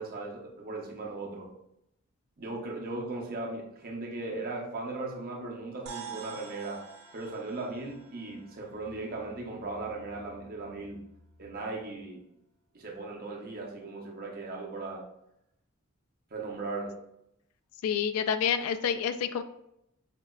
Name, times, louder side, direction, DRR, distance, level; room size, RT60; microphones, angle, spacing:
voice 1, 0.0-1.5 2.4-6.9 7.1-11.1 11.4-12.3 12.7-15.1 16.3-17.0, right 2 dB, 45° right, -1 dB, 0.7 m, -38 dB
sound 1, 5.9-10.5, right 7 dB, 90° right, 0.7 m, -48 dB
voice 2, 17.8-19.4, left 7 dB, 90° left, 13 dB, 0.3 m, -28 dB
5.1 x 2.1 x 2.3 m, 0.80 s
head